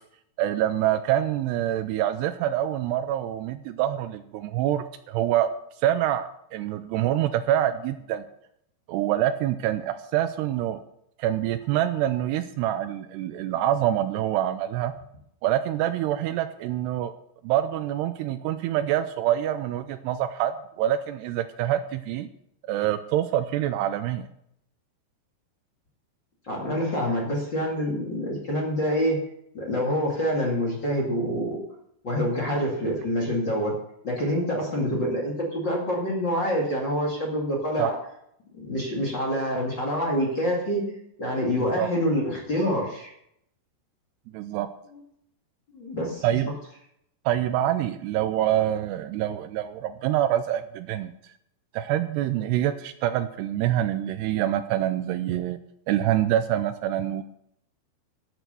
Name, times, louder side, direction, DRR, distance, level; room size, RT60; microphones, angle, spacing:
voice 1, 0.4-5.5 5.8-8.2 8.9-10.8 11.2-14.9 15.4-17.1 17.4-22.3 22.7-24.3 37.8-37.9 41.6-41.9 44.3-44.7 46.2-46.5 47.3-51.1 51.7-55.6 55.9-57.2, right 12 dB, 80° right, 11 dB, 2.6 m, -26 dB
voice 2, 26.5-29.2 29.5-31.6 32.0-33.7 34.0-38.0 38.6-40.8 41.2-43.1 45.7-46.2, equal, 35° left, -2 dB, 2.2 m, -26 dB
12.0 x 8.1 x 6.8 m, 0.73 s
omnidirectional pair, 5.1 m